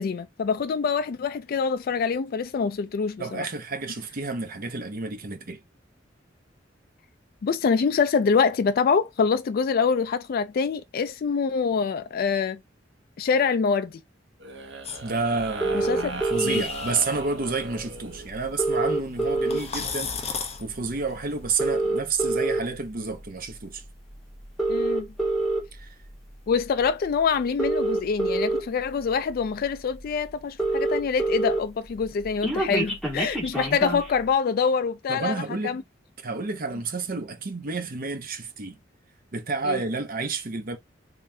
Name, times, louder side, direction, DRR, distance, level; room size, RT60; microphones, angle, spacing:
voice 1, 0.0-3.5 7.4-12.6 13.2-14.0 15.7-16.1 16.4-16.6 19.5-19.6 24.7-25.1 26.5-35.8 39.7-39.8, left 5 dB, 50° left, 0.3 m, -25 dB
voice 2, 3.2-5.6 15.0-23.8 25.7-25.9 35.1-35.8 36.2-38.8 39.3-40.8, right 4 dB, 50° right, 0.8 m, -30 dB
sound 1, 14.4-18.3 19.2-19.9, right 2 dB, 75° right, 1.0 m, -39 dB
sound 2, 14.8-21.6, left 5 dB, 35° left, 0.8 m, -38 dB
sound 3, 15.6-16.6 17.8-17.9 18.1-18.2 18.4-19.9 20.4-20.6 21.4-22.6 23.3-23.5 24.4-25.6 26.8-26.9 27.4-28.6 29.3-29.4 29.7-29.8 30.0-30.1 30.3-31.6 31.9-34.1, right 2 dB, ahead, 1.5 m, -25 dB
3.8 x 3.2 x 2.7 m
head